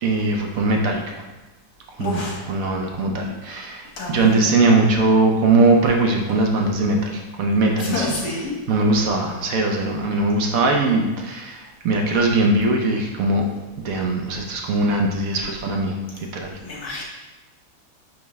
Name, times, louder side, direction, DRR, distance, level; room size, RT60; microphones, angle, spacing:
voice 1, 0.0-1.2 2.0-8.1 8.7-13.4 13.8-16.5, right 2 dB, 60° right, 1 dB, 0.9 m, -20 dB
voice 2, 2.0-2.4 4.0-4.4 7.8-8.5 16.6-17.0, left 3 dB, 55° left, -3 dB, 1.9 m, -28 dB
8.8 x 3.5 x 3.2 m, 1.2 s
omnidirectional pair, 2.1 m